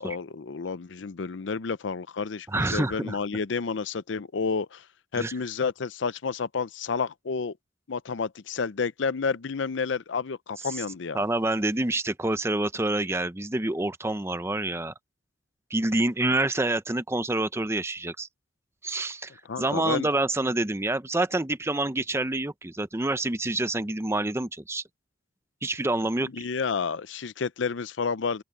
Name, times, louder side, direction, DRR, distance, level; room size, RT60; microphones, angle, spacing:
voice 1, 0.0-4.9 5.1-7.6 7.9-11.2 19.5-20.1 26.2-28.4, left 5 dB, 75° left, 0.6 m, -30 dB
voice 2, 2.5-3.2 5.1-5.3 11.1-14.9 15.7-18.3 18.8-19.3 19.6-24.8 25.6-26.5, right 2 dB, 15° right, 0.7 m, -27 dB
open air
head